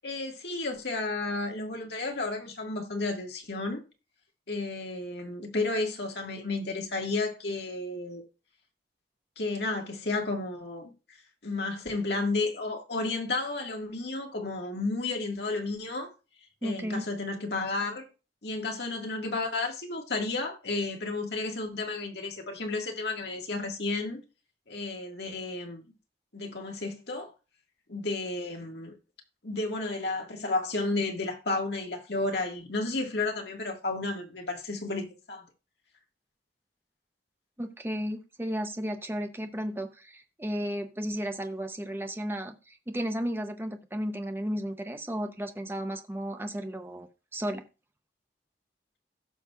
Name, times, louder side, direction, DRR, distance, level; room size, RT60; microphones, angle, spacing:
voice 1, 0.0-3.8 4.5-8.2 9.4-11.2 11.4-16.1 16.6-18.1 18.4-24.2 24.7-25.8 26.3-27.3 27.9-29.0 29.4-35.5, left 3 dB, 65° left, 1.8 m, -32 dB
voice 2, 16.6-17.0 37.6-47.6, equal, 10° right, 0.7 m, -34 dB
16.5 x 6.2 x 2.4 m
head